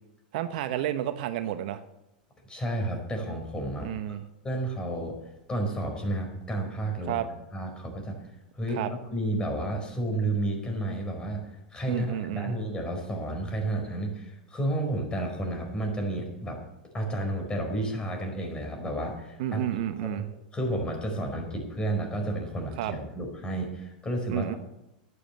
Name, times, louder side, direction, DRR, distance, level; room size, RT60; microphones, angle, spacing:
voice 1, 0.3-1.8 3.8-4.2 7.1-7.3 8.7-8.9 11.9-12.5 19.4-20.3 22.8-22.9 24.3-24.5, right 12 dB, 65° right, 10 dB, 1.0 m, -30 dB
voice 2, 2.5-3.9 4.4-5.2 5.5-7.2 7.5-8.2 8.5-11.4 11.7-16.6 16.9-24.6, right 1 dB, 20° left, 3 dB, 4.6 m, -31 dB
11.5 x 9.7 x 8.3 m, 0.91 s
hypercardioid pair, 105°, 5 cm